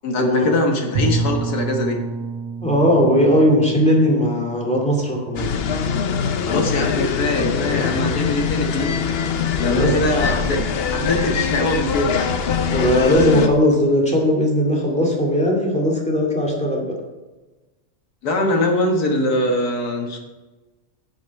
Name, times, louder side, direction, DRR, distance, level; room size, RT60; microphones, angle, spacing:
voice 1, 0.0-2.0 6.5-9.0 9.6-10.6 10.9-12.3 18.2-20.2, left 1 dB, 85° left, 2 dB, 2.0 m, -22 dB
Bowed string instrument, 0.9-5.8, right 3 dB, 80° right, 1.6 m, -28 dB
voice 2, 2.6-5.5 9.7-10.3 12.7-16.9, equal, 5° left, -2 dB, 2.2 m, -18 dB
sound 1, 5.4-13.5, left 6 dB, 55° left, 0.8 m, -23 dB
9.8 x 8.4 x 4.6 m, 1.2 s
omnidirectional pair, 1.6 m